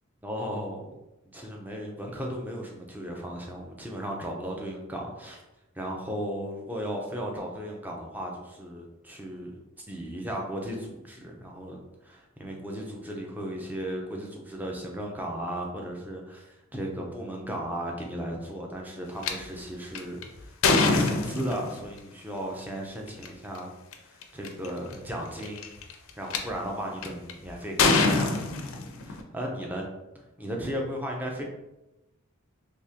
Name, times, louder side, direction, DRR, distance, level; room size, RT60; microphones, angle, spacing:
voice 1, 0.2-0.8 1.3-5.4 5.8-9.5 9.9-20.5 20.8-23.7 24.3-25.6 26.2-28.3 28.6-29.9 30.4-31.4, equal, 10° right, 0 dB, 0.5 m, -35 dB
sound 1, 19.2-19.3 19.9-21.8 23.1-23.3 23.9-24.0 24.2-24.7 25.4-26.4 27.0-27.3 27.8-29.2, left 3 dB, 75° left, 0.5 m, -24 dB
3.5 x 2.8 x 2.8 m, 0.97 s
head